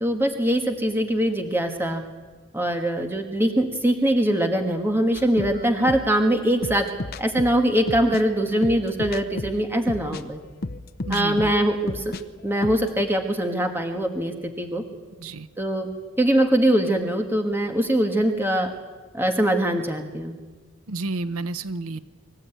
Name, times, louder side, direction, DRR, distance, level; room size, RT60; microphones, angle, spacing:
voice 1, 0.0-2.0 2.5-6.9 7.2-10.4 11.1-12.1 12.4-14.8 15.6-15.9 16.2-18.7 19.1-20.3, right 1 dB, 10° right, 4 dB, 1.6 m, -22 dB
sound 1, 5.1-12.2 12.5-13.0, left 2 dB, 45° left, 0.8 m, -33 dB
voice 2, 11.0-11.5 15.2-15.5 20.9-22.0, right 3 dB, 90° right, 14 dB, 0.8 m, -30 dB
25.0 x 14.5 x 9.1 m, 1.4 s
head